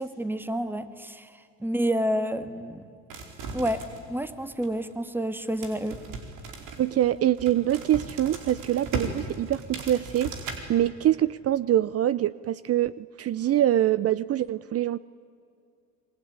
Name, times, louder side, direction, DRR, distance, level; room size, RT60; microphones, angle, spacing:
voice 1, 0.0-2.8 3.5-6.0, equal, 5° right, 11 dB, 1.9 m, -29 dB
sound 1, 3.1-4.2 4.6-4.9 5.6-10.6, right 4 dB, 65° right, 4.9 m, -37 dB
voice 2, 6.8-10.3 10.7-15.0, right 12 dB, 45° right, 18 dB, 0.7 m, -24 dB
28.0 x 22.5 x 9.6 m, 2.3 s
supercardioid pair, 90°, 33 cm